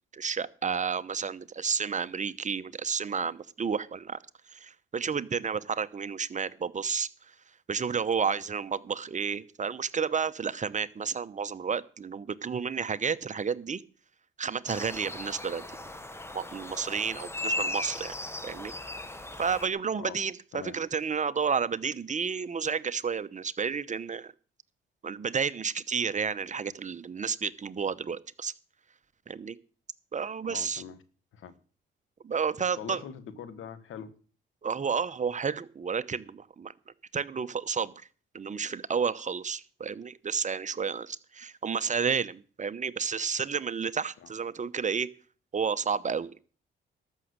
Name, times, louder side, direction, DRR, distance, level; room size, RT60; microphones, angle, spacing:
voice 1, 0.1-4.2 4.5-7.3 7.7-13.8 14.4-15.6 16.3-18.1 18.4-18.7 19.4-24.3 25.0-28.5 29.3-29.6 30.1-30.8 32.2-33.0 34.6-36.7 37.1-38.1 38.3-45.1 45.5-46.4, right 6 dB, 35° right, 0.8 m, -31 dB
sound 1, 14.7-19.7, left 2 dB, 10° left, 1.2 m, -37 dB
voice 2, 30.5-31.0 31.3-31.5 32.8-34.1 44.2-44.3, left 8 dB, 70° left, 1.5 m, -42 dB
13.0 x 6.3 x 8.1 m
supercardioid pair, 70°, 21 cm